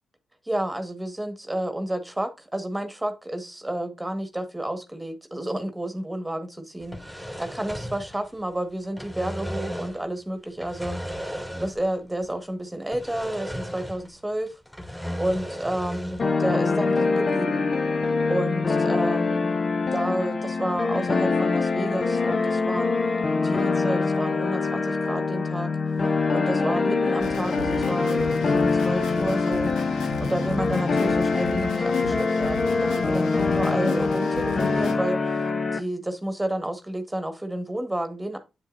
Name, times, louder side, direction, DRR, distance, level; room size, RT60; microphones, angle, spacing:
voice 1, 0.4-11.1 11.6-14.6 15.2-19.5 19.9-23.0 23.4-25.7 26.0-29.8 30.2-35.2 35.7-38.4, right 1 dB, 10° right, 1.6 m, -30 dB
sound 1, 6.8-8.6 8.8-10.1 10.6-12.0 12.2-12.3 12.9-14.2 14.5-16.3, equal, 10° left, 2.3 m, -35 dB
sound 2, 16.2-35.8, left 4 dB, 50° left, 0.8 m, -24 dB
sound 3, 27.2-34.9, left 4 dB, 80° left, 1.1 m, -35 dB
8.3 x 7.1 x 2.6 m
supercardioid pair, 45°, 0 cm